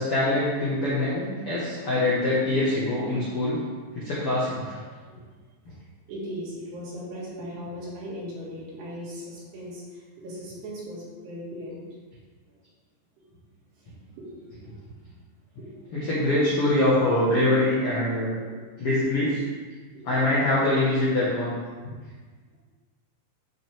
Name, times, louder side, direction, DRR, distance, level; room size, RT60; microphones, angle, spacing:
voice 1, 0.0-3.6 3.9-4.8 15.9-18.4 18.8-19.4 20.0-21.6, left 1 dB, 90° left, -8 dB, 1.2 m, -24 dB
voice 2, 6.1-11.9 13.8-14.7 15.0-15.2 15.6-16.0, equal, 65° right, -7 dB, 4.2 m, -38 dB
11.5 x 5.7 x 3.6 m, 1.4 s
omnidirectional pair, 5.3 m